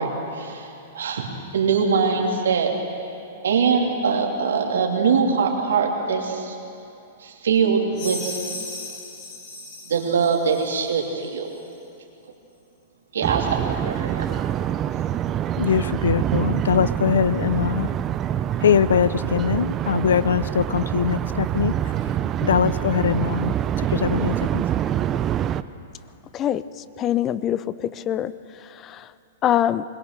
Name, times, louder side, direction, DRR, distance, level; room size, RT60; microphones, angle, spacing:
voice 1, 0.0-2.7 3.4-6.6 7.2-8.3 9.9-11.5 13.1-14.3, right 5 dB, 90° right, 0 dB, 3.0 m, -22 dB
sound 1, 7.9-10.9, left 2 dB, 50° left, 5.4 m, -36 dB
sound 2, 13.2-25.6, right 10 dB, 25° right, 0.5 m, -25 dB
voice 2, 15.6-17.9 18.6-21.7 22.4-24.6, left 8 dB, 85° left, 17 dB, 0.6 m, -22 dB
voice 3, 27.0-28.3 28.6-29.1 29.4-29.8, left 11 dB, 25° left, 16 dB, 0.6 m, -24 dB
21.0 x 21.0 x 6.8 m, 2.7 s
hypercardioid pair, 145°, 0 cm